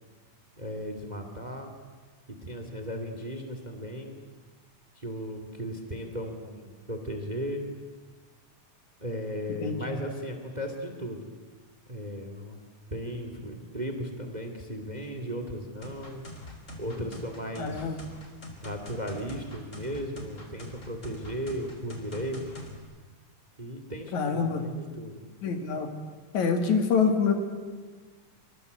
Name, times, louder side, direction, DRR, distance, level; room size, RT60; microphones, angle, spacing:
voice 1, 0.6-1.7 2.4-4.2 5.0-7.6 9.0-11.2 11.9-12.6 12.9-16.2 16.8-17.8 18.6-22.4 23.6-25.2, equal, 15° right, 6 dB, 2.2 m, -36 dB
sound 1, 15.8-22.8, left 1 dB, 25° left, 3.5 m, -43 dB
voice 2, 17.6-18.0 24.1-24.6 25.4-25.9 26.3-27.3, left 5 dB, 70° left, 6 dB, 3.6 m, -25 dB
25.0 x 24.5 x 8.2 m, 1.4 s
omnidirectional pair, 3.5 m